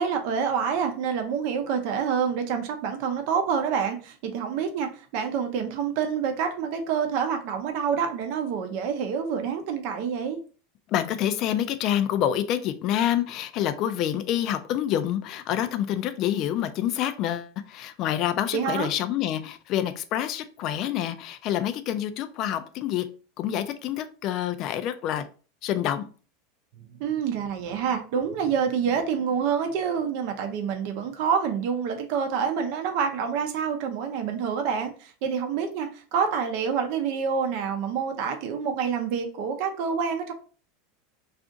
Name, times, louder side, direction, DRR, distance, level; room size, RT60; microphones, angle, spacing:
voice 1, 0.0-10.4 18.5-18.9 26.8-40.3, right 6 dB, 60° right, 5 dB, 0.6 m, -27 dB
voice 2, 10.9-23.1 23.4-25.3 25.6-26.1, left 11 dB, 45° left, 10 dB, 0.4 m, -27 dB
2.5 x 2.4 x 3.8 m, 0.38 s
supercardioid pair, 125°, 0 cm